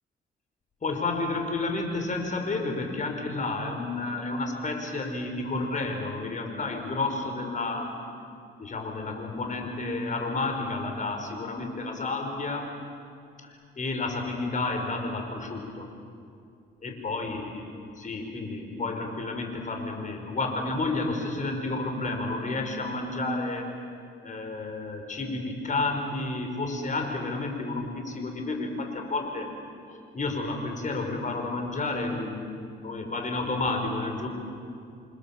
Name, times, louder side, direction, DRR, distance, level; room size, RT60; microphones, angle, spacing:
voice 1, 0.8-7.9 8.6-12.7 13.4-15.9 16.8-17.7 18.0-23.7 24.2-29.5 29.9-32.6 32.8-34.3, left 3 dB, 40° left, 4 dB, 5.3 m, -31 dB
29.5 x 25.0 x 7.5 m, 2.4 s
cardioid pair, 90°, 20 cm